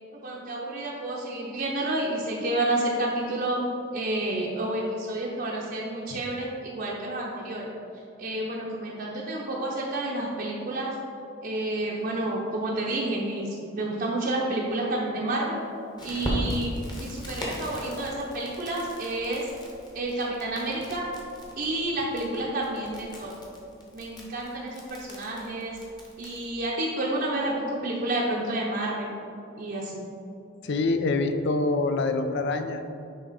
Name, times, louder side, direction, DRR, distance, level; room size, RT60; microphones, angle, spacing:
voice 1, 0.2-3.6 3.9-7.7 8.2-10.9 11.4-15.6 16.0-19.5 19.9-21.1 21.6-23.4 23.9-25.8 26.2-29.1 29.6-30.1, right 1 dB, 45° right, -4 dB, 0.7 m, -30 dB
Crackle, 16.0-26.5, equal, 20° left, 1.1 m, -38 dB
voice 2, 30.6-32.8, left 3 dB, 55° left, 8 dB, 0.5 m, -25 dB
9.3 x 3.5 x 4.0 m, 2.7 s
head